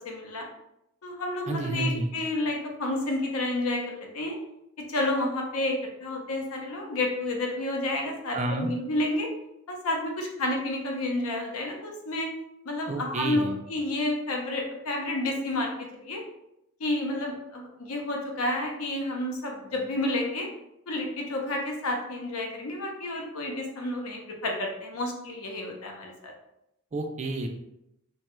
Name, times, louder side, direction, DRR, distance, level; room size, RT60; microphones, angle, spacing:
voice 1, 0.0-0.5 1.0-4.4 4.8-9.3 9.7-12.3 12.6-13.4 13.7-15.7 16.0-16.2 16.8-20.5 20.9-26.3, left 1 dB, 80° left, 1 dB, 0.7 m, -30 dB
voice 2, 1.5-2.1 8.3-8.7 12.9-13.6 26.9-27.5, right 2 dB, 30° right, 4 dB, 0.3 m, -30 dB
3.1 x 2.3 x 2.9 m, 0.83 s
head